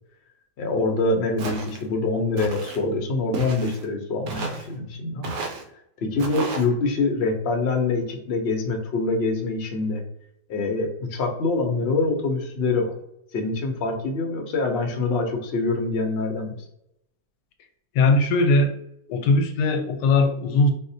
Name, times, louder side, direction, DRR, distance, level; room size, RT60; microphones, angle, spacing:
voice 1, 0.6-5.3 6.0-10.0 10.5-12.9 13.3-16.6, left 3 dB, 65° left, 2 dB, 0.6 m, -25 dB
Walk footsteps, 1.4-1.8 2.4-2.8 3.3-3.9 4.3-4.7 5.2-5.6 6.2-6.7, right 3 dB, 80° right, 1.2 m, -32 dB
voice 2, 17.9-18.7 19.1-20.7, left 3 dB, 85° left, 5 dB, 1.2 m, -19 dB
4.5 x 2.1 x 2.7 m, 0.77 s
omnidirectional pair, 1.8 m